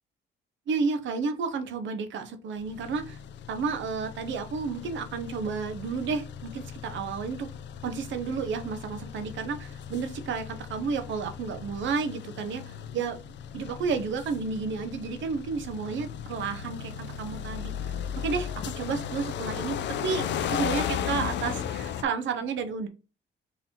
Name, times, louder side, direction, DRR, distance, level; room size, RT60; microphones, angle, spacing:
voice 1, 0.7-3.2 3.5-7.5 7.8-13.2 13.5-22.9, right 5 dB, 70° right, 7 dB, 0.8 m, -32 dB
sound 1, 2.6-22.0, left 8 dB, 65° left, 0.4 m, -36 dB
3.9 x 2.8 x 4.2 m, 0.31 s
cardioid pair, 90°, 20 cm